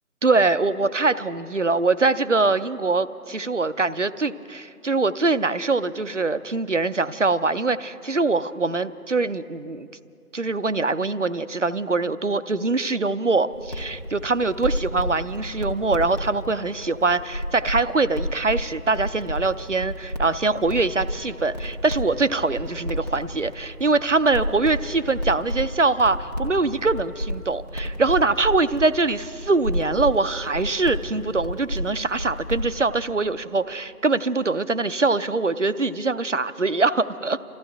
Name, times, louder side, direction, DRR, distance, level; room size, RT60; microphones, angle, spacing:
voice 1, 0.2-9.9 10.3-37.4, right 3 dB, 55° right, 14 dB, 0.5 m, -23 dB
sound 1, 13.5-32.7, equal, 25° left, 1.3 m, -32 dB
29.0 x 14.5 x 3.5 m, 2.5 s
figure-of-eight pair, 170°, 46 cm